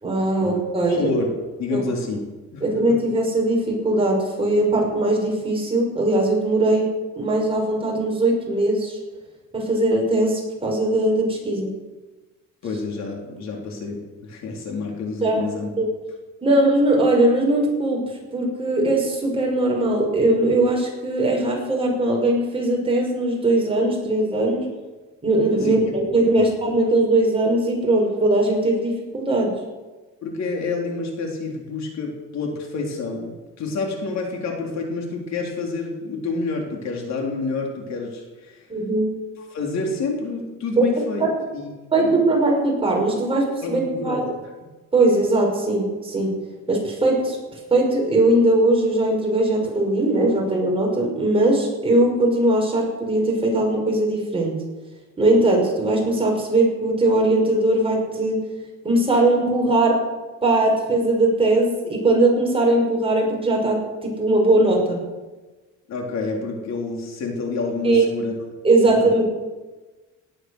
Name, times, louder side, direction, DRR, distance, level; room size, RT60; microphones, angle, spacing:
voice 1, 0.0-1.1 1.7-1.8 2.6-6.9 7.2-9.0 9.5-11.7 15.2-15.4 15.8-15.9 16.4-18.0 18.3-24.6 25.2-25.9 26.1-29.5 38.7-39.1 40.8-40.9 41.9-44.2 44.9-46.3 46.7-47.4 47.7-54.6 55.2-58.4 58.8-60.0 60.4-65.0 67.8-68.1 68.6-69.2, right 2 dB, 15° right, -1 dB, 5.5 m, -20 dB
voice 2, 0.9-1.3 1.6-2.2 2.5-2.6 12.6-15.7 25.6-25.8 26.4-26.5 30.2-38.6 39.4-41.2 41.5-42.1 43.6-44.2 65.9-68.3 69.0-69.1, left 3 dB, 60° left, 0 dB, 4.0 m, -28 dB
18.5 x 11.5 x 6.4 m, 1.2 s
cardioid pair, 145°, 31 cm